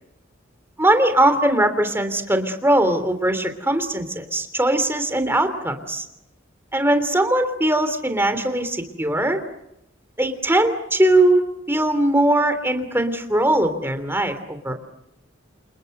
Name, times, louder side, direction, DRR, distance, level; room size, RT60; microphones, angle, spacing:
voice 1, 0.8-6.0 6.7-9.4 10.2-14.8, right 1 dB, 10° right, 8 dB, 3.1 m, -20 dB
29.5 x 28.5 x 6.7 m, 0.85 s
head